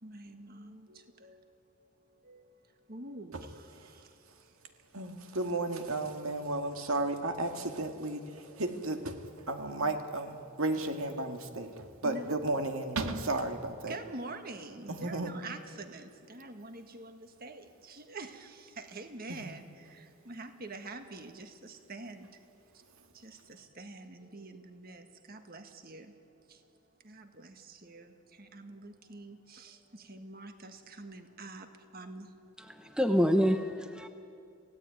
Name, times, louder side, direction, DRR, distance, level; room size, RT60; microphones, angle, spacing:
voice 1, 0.0-4.6 8.4-8.6 12.0-12.4 13.9-22.3 22.7-26.2 26.5-26.7 27.0-32.3, right 2 dB, 40° right, 7 dB, 1.7 m, -47 dB
voice 2, 4.9-14.0 14.9-15.3 19.3-19.5, right 2 dB, 70° right, 5 dB, 1.9 m, -34 dB
voice 3, 32.6-34.1, equal, 5° right, 6 dB, 0.8 m, -27 dB
27.0 x 17.0 x 9.3 m, 2.4 s
head